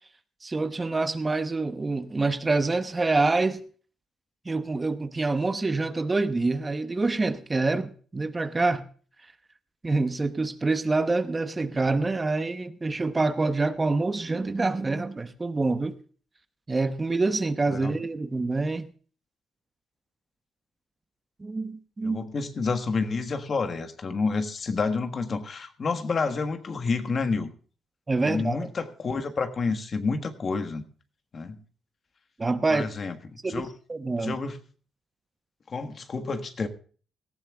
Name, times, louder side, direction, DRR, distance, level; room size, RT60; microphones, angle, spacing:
voice 1, 0.4-3.6 4.4-8.8 9.8-15.9 16.7-18.9 21.4-22.3 28.1-28.7 32.4-32.9 33.4-33.6 33.9-34.4, right 3 dB, 25° right, 0.9 m, -26 dB
voice 2, 22.0-27.5 28.2-30.8 31.3-31.6 32.7-33.7 34.2-34.6 35.7-36.7, left 4 dB, 45° left, 1.5 m, -29 dB
18.0 x 14.0 x 2.3 m
cardioid pair, 90°, 0 cm